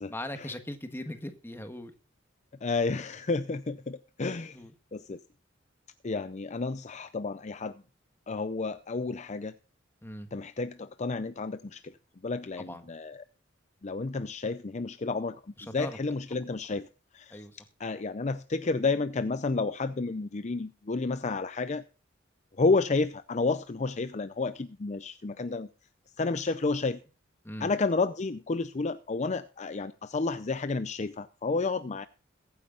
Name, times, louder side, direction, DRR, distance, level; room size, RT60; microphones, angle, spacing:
voice 1, 0.1-1.9 4.5-4.7 10.0-10.3 12.6-12.9 15.6-16.0 17.3-17.6 27.4-27.7, left 1 dB, 10° left, 1.5 m, -39 dB
voice 2, 2.6-4.6 4.9-5.2 6.0-7.8 8.3-9.5 10.3-12.0 12.2-13.2 13.8-15.4 15.7-16.9 17.1-17.4 17.8-21.8 22.6-25.7 26.2-27.0 27.6-32.1, left 3 dB, 35° left, 0.5 m, -31 dB
22.0 x 9.5 x 2.5 m
head